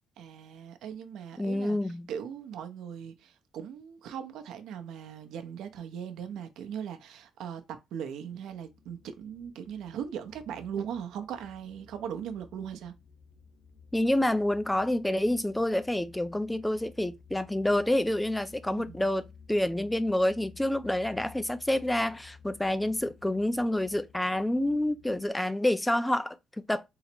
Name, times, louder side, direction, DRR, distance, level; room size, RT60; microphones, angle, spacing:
voice 1, 0.2-12.9 18.7-19.1, right 8 dB, 80° right, 0.6 m, -39 dB
voice 2, 1.4-2.1 13.9-26.8, left 1 dB, 5° left, 0.3 m, -28 dB
sound 1, 8.5-25.3, left 5 dB, 65° left, 1.1 m, -55 dB
3.8 x 2.0 x 4.4 m
cardioid pair, 145°, 0 cm